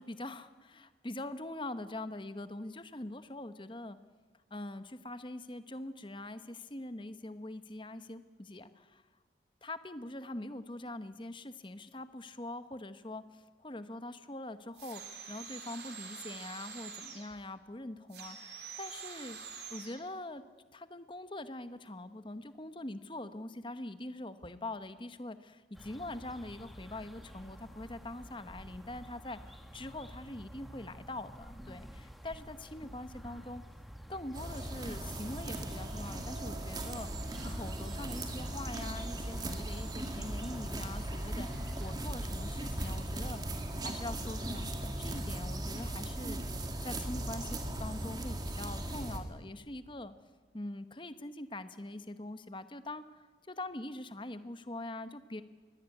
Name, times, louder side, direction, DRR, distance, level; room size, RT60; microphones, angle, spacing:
voice 1, 0.0-4.0 4.5-9.0 9.6-19.4 19.7-20.4 20.7-29.4 29.7-33.6 34.1-50.1 50.5-55.4, left 2 dB, 25° left, 11 dB, 1.0 m, -43 dB
sound 1, 14.7-17.3 18.1-20.0, right 6 dB, 70° right, 3.8 m, -46 dB
sound 2, 25.7-41.9, equal, ahead, 1.8 m, -51 dB
sound 3, 34.3-49.2, right 1 dB, 20° right, 2.2 m, -38 dB
22.5 x 17.5 x 9.8 m, 1.4 s
head